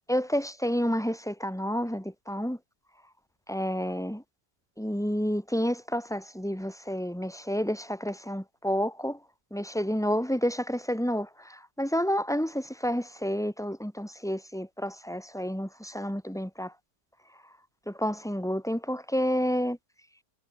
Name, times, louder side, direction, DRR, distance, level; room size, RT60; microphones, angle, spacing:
voice 1, 0.1-2.6 3.5-4.2 4.8-9.2 9.5-16.7 17.9-19.8, equal, ahead, 3.9 m, -30 dB
omnidirectional pair, 1.9 m